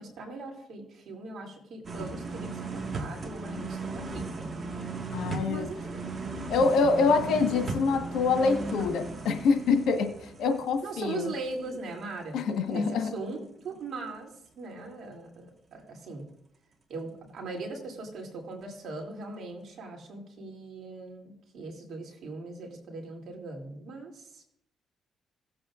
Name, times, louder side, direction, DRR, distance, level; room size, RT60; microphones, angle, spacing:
voice 1, 0.0-4.2 5.5-6.0 10.8-16.3 16.9-24.4, right 3 dB, 65° right, 0 dB, 2.8 m, -40 dB
sound 1, 1.8-11.7 12.0-12.1, right 3 dB, 40° right, 1.7 m, -36 dB
voice 2, 5.1-5.7 6.5-11.3 12.3-13.1, left 4 dB, 80° left, 5 dB, 1.3 m, -25 dB
17.0 x 7.8 x 2.5 m, 0.73 s
cardioid pair, 90°, 0 cm